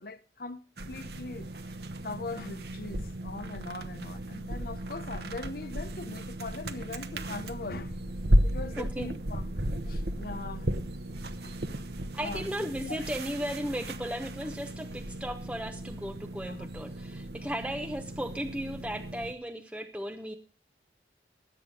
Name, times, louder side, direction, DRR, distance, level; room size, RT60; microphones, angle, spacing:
voice 1, 0.0-1.5 2.0-8.1 8.4-10.7 11.4-11.5 12.2-13.1 16.5-16.7, left 3 dB, 55° left, 0.9 m, -41 dB
sound 1, 0.8-19.3, equal, 60° right, 1.1 m, -34 dB
voice 2, 8.8-9.1 12.1-20.4, equal, 5° right, 0.8 m, -36 dB
12.5 x 8.7 x 5.2 m
head